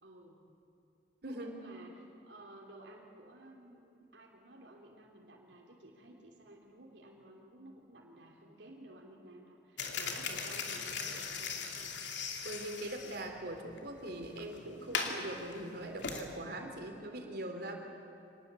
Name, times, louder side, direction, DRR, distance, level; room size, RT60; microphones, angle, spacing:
voice 1, 0.0-0.4 1.2-11.9, right 1 dB, 85° right, -2 dB, 3.2 m, -54 dB
voice 2, 1.2-1.6 12.4-17.7, right 1 dB, 65° right, 3 dB, 3.6 m, -42 dB
sound 1, 9.8-16.2, left 5 dB, 80° left, 2.7 m, -39 dB
25.5 x 19.5 x 8.4 m, 2.8 s
head